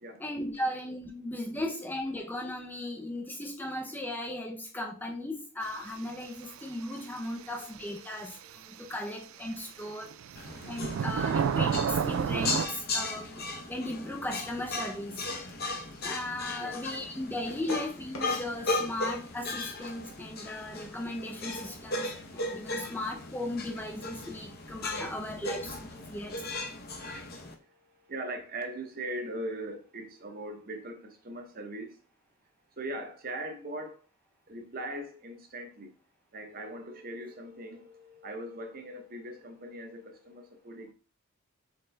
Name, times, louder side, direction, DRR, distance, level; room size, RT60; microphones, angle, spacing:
voice 1, 0.2-10.1 10.7-15.3 16.0-25.8 26.1-26.4, left 1 dB, 10° left, 0.4 m, -37 dB
sound 1, 8.0-8.1 10.1-12.7, right 7 dB, 70° right, 0.3 m, -29 dB
sound 2, 10.4-27.5, left 2 dB, 45° left, 0.7 m, -37 dB
sound 3, 15.0-20.1, left 2 dB, 85° left, 1.1 m, -50 dB
voice 2, 26.2-32.0 32.8-34.0 34.5-35.9 36.3-40.9, right 1 dB, 40° right, 0.8 m, -41 dB
4.4 x 3.7 x 3.3 m
head